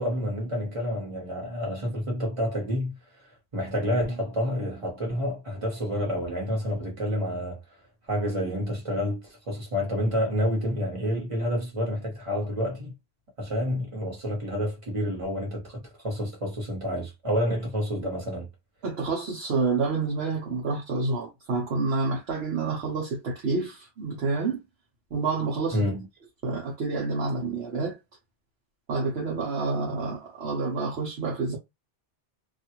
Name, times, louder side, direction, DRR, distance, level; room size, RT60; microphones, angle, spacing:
voice 1, 0.0-2.9 3.5-7.6 8.1-12.9 13.4-18.5 25.7-26.1, equal, 30° right, 1.3 m, -29 dB
voice 2, 18.8-24.6 25.1-25.8 26.4-28.0 28.9-31.6, right 4 dB, 70° right, 1.1 m, -28 dB
2.7 x 2.4 x 2.8 m
omnidirectional pair, 1.1 m